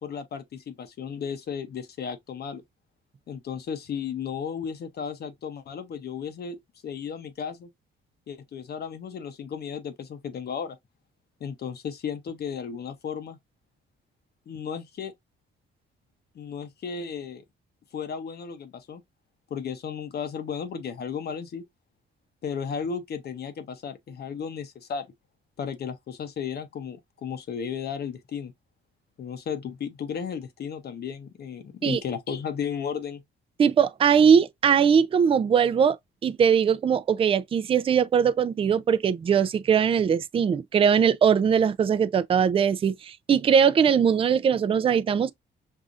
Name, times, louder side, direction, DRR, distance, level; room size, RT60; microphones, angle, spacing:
voice 1, 0.0-2.6 3.3-7.7 8.3-10.8 11.4-13.4 14.5-15.1 16.3-17.4 17.9-19.0 19.5-21.6 22.4-25.1 25.6-28.5 29.2-33.2, left 7 dB, 55° left, 0.7 m, -34 dB
voice 2, 33.6-36.0 36.2-45.3, right 7 dB, 30° right, 0.3 m, -21 dB
5.4 x 2.4 x 2.4 m
cardioid pair, 90°, 20 cm